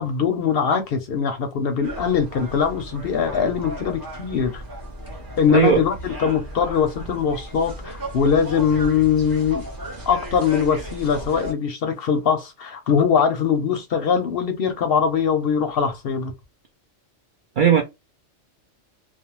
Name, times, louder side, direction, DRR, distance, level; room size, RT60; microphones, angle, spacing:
voice 1, 0.0-4.6 5.4-9.6 10.1-16.3, left 7 dB, 60° left, 0.6 m, -22 dB
sound 1, 1.8-11.5, right 1 dB, 20° right, 0.6 m, -35 dB
voice 2, 5.5-5.8 17.6-17.8, right 7 dB, 65° right, 0.5 m, -16 dB
2.5 x 2.0 x 2.9 m
omnidirectional pair, 1.3 m